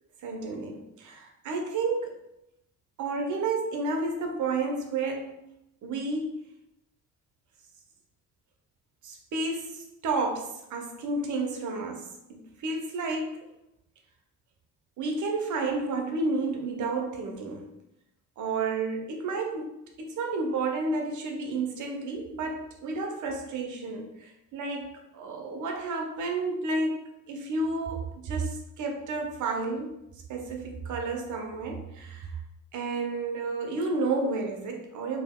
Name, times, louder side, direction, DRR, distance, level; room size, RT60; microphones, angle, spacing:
voice 1, 0.2-2.2 3.0-5.4 5.8-6.4 9.0-13.4 15.0-17.7 18.4-30.0 30.3-32.4 32.7-35.2, right 3 dB, 50° right, 2 dB, 0.7 m, -31 dB
3.4 x 2.6 x 2.2 m, 0.85 s
hypercardioid pair, 55°, 39 cm